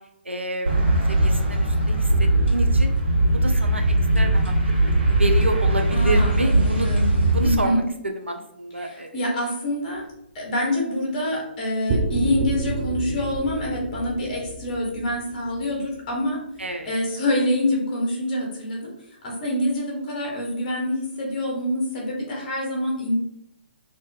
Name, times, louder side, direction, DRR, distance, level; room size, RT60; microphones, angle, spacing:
voice 1, 0.2-2.9 3.3-4.7 5.2-6.9 7.3-7.9 8.2-9.3 16.6-16.9, right 2 dB, 85° right, 4 dB, 0.4 m, -29 dB
sound 1, 0.7-7.5, right 1 dB, 60° right, 1.0 m, -20 dB
voice 2, 5.9-7.8 8.8-10.0 10.3-16.4 16.8-18.9 19.2-23.1, left 1 dB, 35° left, -2 dB, 0.8 m, -26 dB
sound 2, 11.9-16.3, right 2 dB, 25° right, 0.4 m, -29 dB
2.5 x 2.2 x 2.3 m, 0.77 s
figure-of-eight pair, 130°, 6 cm